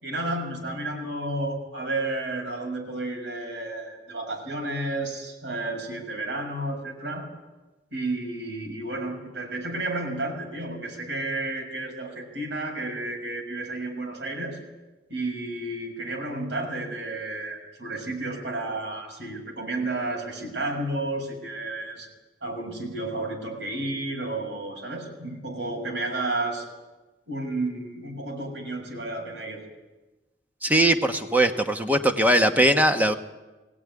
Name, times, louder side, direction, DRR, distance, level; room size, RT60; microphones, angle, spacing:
voice 1, 0.0-7.2 7.9-14.6 15.1-22.1 22.4-26.7 27.3-29.6, right 2 dB, 75° right, 1 dB, 6.7 m, -31 dB
voice 2, 30.6-33.1, right 1 dB, 10° right, 5 dB, 1.3 m, -20 dB
22.0 x 17.5 x 9.9 m, 1.1 s
head